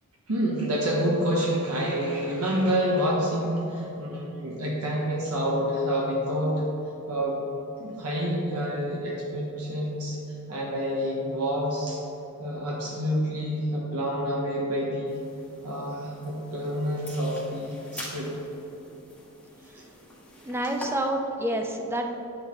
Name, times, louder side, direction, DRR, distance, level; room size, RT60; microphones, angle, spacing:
voice 1, 0.3-6.6 7.1-7.4 7.8-10.2 10.5-12.0 12.4-15.2 15.6-18.3 19.8-19.9, equal, 75° right, -4 dB, 1.2 m, -28 dB
sound 1, 15.1-20.9, left 1 dB, 5° left, 1.3 m, -45 dB
voice 2, 20.4-22.1, right 1 dB, 10° right, 3 dB, 0.5 m, -28 dB
9.2 x 6.4 x 3.1 m, 3.0 s
head